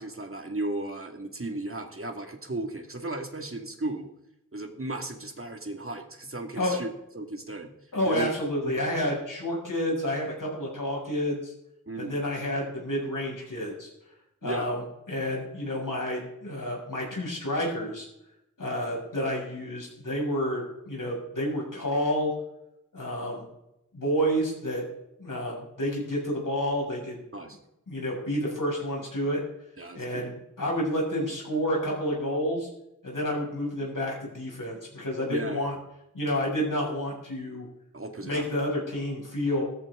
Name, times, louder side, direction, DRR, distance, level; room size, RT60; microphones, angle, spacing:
voice 1, 0.0-4.1 4.5-7.7 8.1-8.3 8.6-8.8 11.9-12.2 14.4-14.7 27.3-27.6 29.8-30.3 35.2-35.8 37.9-38.6, right 2 dB, 45° right, 4 dB, 2.1 m, -35 dB
voice 2, 7.9-11.5 12.0-13.9 14.4-18.0 18.6-22.3 22.9-23.5 23.9-24.8 25.2-27.2 27.9-29.4 29.9-32.7 33.0-35.7 36.1-37.6 38.2-39.6, equal, 90° left, -3 dB, 6.5 m, -29 dB
16.0 x 13.5 x 3.8 m, 0.84 s
wide cardioid pair, 45°, 31 cm